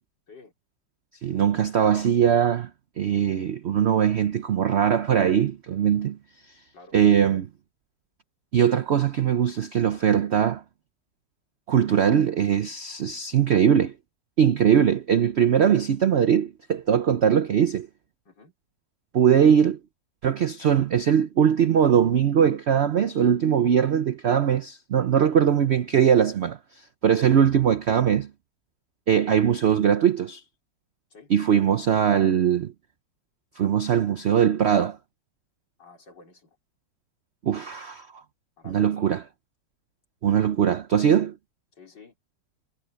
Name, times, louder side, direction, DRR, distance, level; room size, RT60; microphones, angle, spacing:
voice 1, 1.2-2.7 3.0-6.2 6.9-7.5 8.5-10.6 11.7-13.9 14.4-17.9 19.1-19.8 20.2-26.6 27.0-28.3 29.1-30.4 31.3-32.7 33.6-35.0 37.4-38.1 38.7-39.2 40.2-41.3, right 8 dB, 70° right, 0.6 m, -21 dB
voice 2, 35.8-36.6 38.6-39.0 41.7-42.2, left 4 dB, 75° left, 4.7 m, -50 dB
omnidirectional pair, 1.9 m